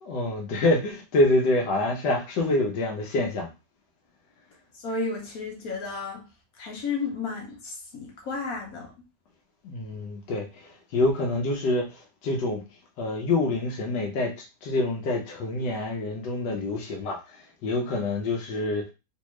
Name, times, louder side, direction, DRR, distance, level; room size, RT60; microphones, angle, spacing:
voice 1, 0.0-3.5 9.6-12.6 13.0-18.9, left 2 dB, 90° left, 1.4 m, -26 dB
voice 2, 4.7-6.2 6.6-8.9, left 4 dB, 60° left, 1.5 m, -33 dB
3.2 x 2.7 x 3.0 m
omnidirectional pair, 1.9 m